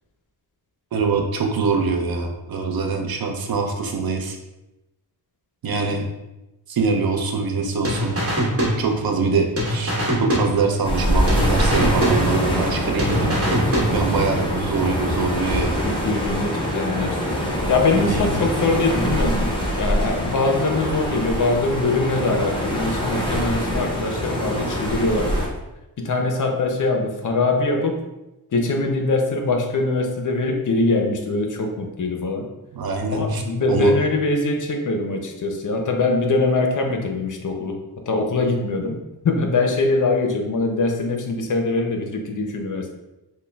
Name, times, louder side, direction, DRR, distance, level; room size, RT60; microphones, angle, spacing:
voice 1, 0.9-4.4 5.6-6.0 6.7-8.2 8.6-9.9 10.2-13.3 13.9-15.9 18.0-18.4 32.7-33.4 33.7-33.9, right 4 dB, 60° right, 3 dB, 0.6 m, -24 dB
sound 1, 7.8-9.3 9.6-11.0 11.3-12.7 13.0-14.3, right 1 dB, 35° right, 1.1 m, -23 dB
sound 2, 10.8-25.5, equal, 10° left, 0.7 m, -24 dB
voice 2, 15.6-17.3 17.7-25.3 26.0-27.9 28.5-32.5 33.1-37.8 38.1-39.0 39.2-42.9, left 3 dB, 50° left, 3 dB, 0.6 m, -22 dB
6.3 x 2.1 x 2.2 m, 0.99 s
wide cardioid pair, 95°, 40 cm